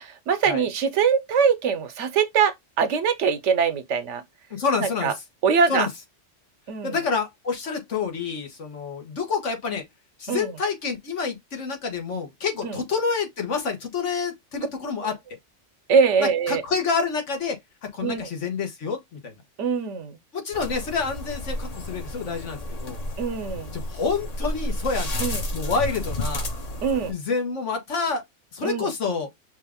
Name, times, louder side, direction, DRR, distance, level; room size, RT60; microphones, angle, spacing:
voice 1, 0.0-4.2 4.8-5.1 5.4-5.9 6.7-6.9 10.3-10.5 12.6-12.8 15.9-16.6 18.0-18.3 19.6-20.2 23.2-23.7 25.2-25.4 26.8-27.1 28.6-28.9, right 6 dB, 80° right, 1.1 m, -23 dB
voice 2, 4.5-5.2 5.7-5.9 6.8-9.9 10.2-15.1 16.2-19.3 20.3-23.0 23.7-25.2 25.5-26.5 27.1-28.2 28.5-29.3, left 5 dB, 80° left, 1.5 m, -28 dB
sound 1, 20.5-27.1, left 1 dB, 40° left, 0.8 m, -31 dB
5.3 x 2.5 x 3.5 m
omnidirectional pair, 1.2 m